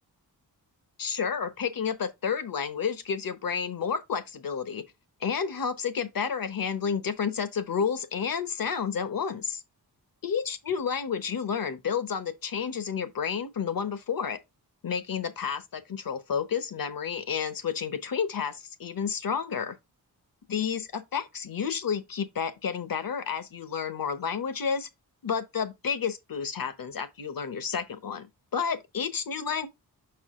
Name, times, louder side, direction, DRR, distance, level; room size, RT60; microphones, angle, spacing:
voice 1, 1.0-4.8 5.2-9.6 10.2-14.4 14.8-19.8 20.5-24.9 25.2-28.3 28.5-29.7, left 6 dB, 60° left, 1.0 m, -30 dB
5.9 x 4.8 x 3.6 m
wide cardioid pair, 135°, 38 cm